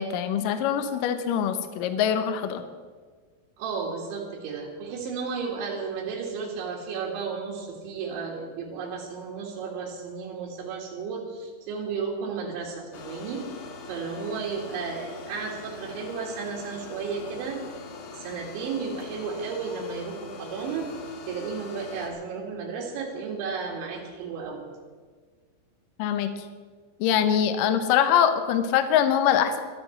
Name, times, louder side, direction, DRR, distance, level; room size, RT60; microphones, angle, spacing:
voice 1, 0.0-2.6 26.0-26.5 27.0-29.6, left 9 dB, 90° left, 9 dB, 1.9 m, -23 dB
voice 2, 3.6-13.4 13.9-17.6 18.2-20.9 21.3-24.7, right 5 dB, 85° right, -3 dB, 4.3 m, -33 dB
sound 1, 12.9-22.1, left 4 dB, 70° left, 3.6 m, -42 dB
12.0 x 12.0 x 7.1 m, 1.5 s
omnidirectional pair, 5.2 m